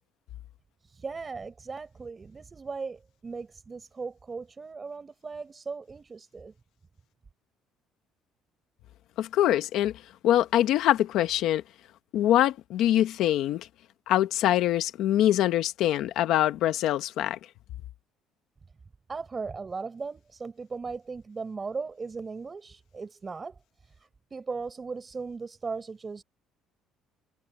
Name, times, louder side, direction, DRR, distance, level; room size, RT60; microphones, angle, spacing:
voice 1, 0.8-6.5 19.1-23.9 24.3-26.2, right 4 dB, 20° right, 6.4 m, -38 dB
voice 2, 9.2-9.9 10.2-11.6 12.1-13.7 14.1-17.4, left 12 dB, 60° left, 1.0 m, -24 dB
cardioid pair, 170°, 0 cm